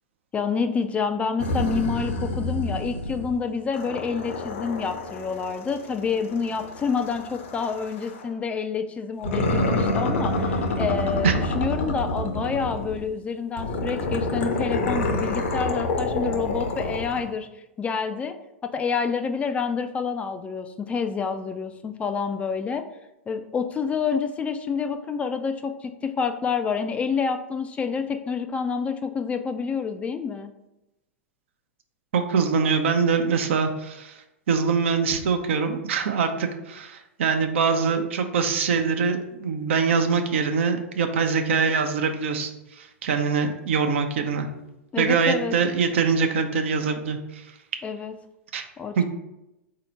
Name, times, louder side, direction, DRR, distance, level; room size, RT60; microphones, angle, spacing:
voice 1, 0.3-18.4 18.6-22.8 23.3-30.5 44.9-45.6 47.8-48.1 48.8-49.0, left 5 dB, 20° left, 8 dB, 0.3 m, -28 dB
sound 1, 1.4-3.4 3.7-8.3 9.2-13.1 13.6-17.3, left 2 dB, 65° left, 0.8 m, -28 dB
voice 2, 32.1-44.5 45.0-47.4 48.5-48.7 49.0-49.1, right 5 dB, 65° right, 6 dB, 0.6 m, -23 dB
4.1 x 2.8 x 4.5 m, 0.91 s
hypercardioid pair, 105°, 7 cm